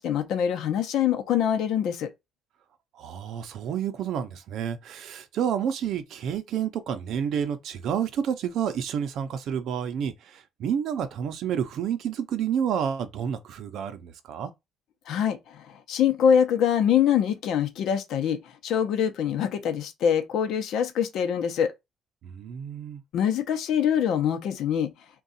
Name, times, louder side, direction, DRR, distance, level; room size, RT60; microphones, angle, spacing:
voice 1, 0.0-2.1 15.1-21.7 23.1-24.9, left 8 dB, 65° left, 0.7 m, -24 dB
voice 2, 2.9-14.5 22.2-23.0, right 8 dB, 55° right, 0.6 m, -29 dB
3.7 x 2.3 x 4.0 m
cardioid pair, 180°, 0 cm